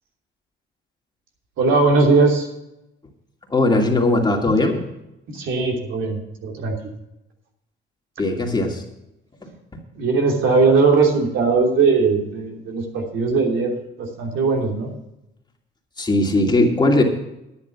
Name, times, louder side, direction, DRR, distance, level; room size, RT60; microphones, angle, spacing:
voice 1, 1.6-2.5 5.3-6.7 9.9-14.9, right 4 dB, 80° right, 0 dB, 3.1 m, -19 dB
voice 2, 3.5-4.8 8.2-8.8 16.0-17.0, left 2 dB, 20° left, 0 dB, 2.6 m, -18 dB
10.5 x 9.7 x 5.9 m, 0.88 s
cardioid pair, 90°, 20 cm